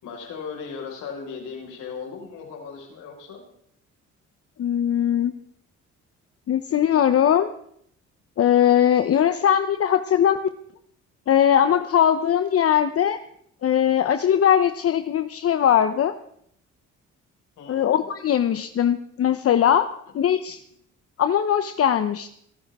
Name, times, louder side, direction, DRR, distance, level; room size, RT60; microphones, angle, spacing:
voice 1, 0.0-3.4 17.6-18.1, left 5 dB, 90° left, 1 dB, 5.0 m, -37 dB
voice 2, 4.6-5.3 6.5-7.5 8.4-10.4 11.3-13.2 13.6-16.1 17.7-20.6 21.2-22.3, left 9 dB, 50° left, 10 dB, 0.8 m, -20 dB
25.0 x 13.0 x 3.6 m, 0.67 s
cardioid pair, 90°, 30 cm